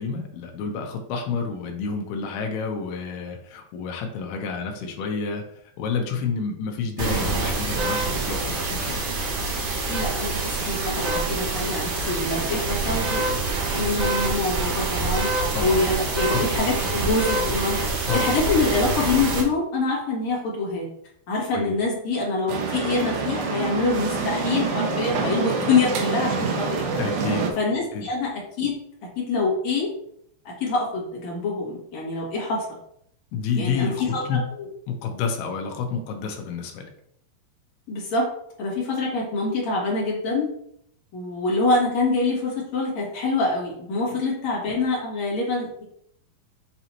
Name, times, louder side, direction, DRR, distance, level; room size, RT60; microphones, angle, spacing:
voice 1, 0.0-5.4 5.8-9.0 15.5-15.9 16.3-16.5 16.8-16.9 17.3-17.5 18.1-18.4 21.5-21.7 27.0-27.5 27.9-28.1 33.3-34.4 34.9-36.9, left 5 dB, 75° left, 3 dB, 2.7 m, -29 dB
sound 1, 7.0-19.4, right 3 dB, 60° right, 2.3 m, -26 dB
voice 2, 9.9-13.2 13.7-17.8 18.1-20.9 21.3-26.9 27.5-28.7 29.2-29.9 30.6-32.7 33.6-34.7 37.9-38.3 38.6-40.5 41.1-45.8, left 3 dB, 50° left, -4 dB, 2.7 m, -25 dB
sound 2, 22.5-27.5, right 4 dB, 80° right, 1.8 m, -26 dB
8.3 x 4.0 x 3.0 m, 0.69 s
omnidirectional pair, 4.9 m